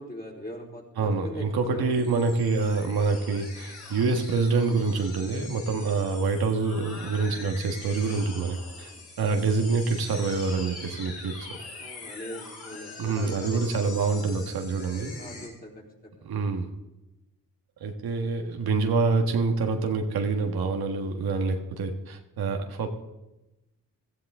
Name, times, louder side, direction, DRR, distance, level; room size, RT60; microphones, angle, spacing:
voice 1, 0.0-2.0 11.8-13.6 15.2-16.1, left 1 dB, 25° left, -1 dB, 3.9 m, -40 dB
voice 2, 1.0-8.9 9.2-11.6 13.0-15.1 16.2-16.7 17.8-22.9, right 4 dB, 75° right, 3 dB, 1.6 m, -26 dB
sound 1, 1.9-15.5, left 3 dB, 85° left, 4.9 m, -43 dB
16.0 x 13.0 x 3.7 m, 0.98 s
cardioid pair, 60°, 37 cm